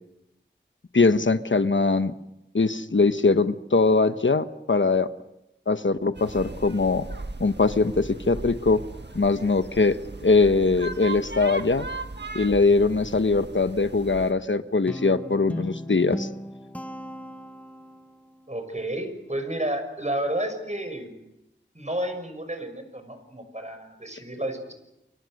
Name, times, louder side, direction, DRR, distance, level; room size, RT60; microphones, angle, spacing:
voice 1, 0.9-2.1 2.5-5.1 5.7-7.0 7.4-8.8 9.1-11.9 12.3-16.3, left 3 dB, 80° left, 10 dB, 1.1 m, -22 dB
sound 1, 6.1-14.3, right 2 dB, 65° right, 1.7 m, -38 dB
Guitar, 14.9-18.1, left 1 dB, 5° left, 1.5 m, -36 dB
voice 2, 18.5-21.1 21.7-24.7, right 1 dB, 35° right, 7 dB, 6.3 m, -31 dB
29.0 x 24.5 x 6.5 m, 0.89 s
wide cardioid pair, 40°, 20 cm